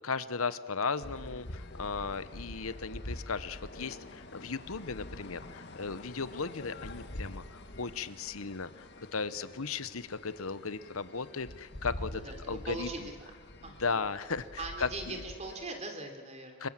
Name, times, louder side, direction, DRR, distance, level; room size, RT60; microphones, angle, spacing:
voice 1, 0.0-13.1 13.6-15.2 16.6-16.7, left 4 dB, 75° left, 14 dB, 1.1 m, -36 dB
sound 1, 1.0-15.7, left 1 dB, 50° left, 1.7 m, -46 dB
voice 2, 12.1-13.1 13.6-14.0 14.6-16.7, right 2 dB, 30° right, 4 dB, 3.7 m, -41 dB
26.5 x 23.5 x 7.6 m, 1.5 s
head